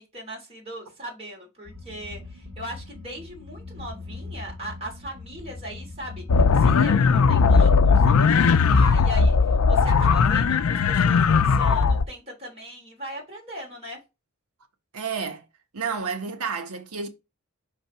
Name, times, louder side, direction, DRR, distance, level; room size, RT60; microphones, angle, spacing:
voice 1, 0.0-6.2 6.5-14.0, equal, 30° right, 2.8 m, -39 dB
sound 1, 1.7-7.6, left 3 dB, 55° right, 1.8 m, -40 dB
ovni acelerator, 6.3-12.0, left 5 dB, 70° left, 0.5 m, -18 dB
voice 2, 14.9-15.4 15.7-17.1, right 5 dB, 85° right, 1.1 m, -30 dB
5.5 x 3.4 x 5.4 m
head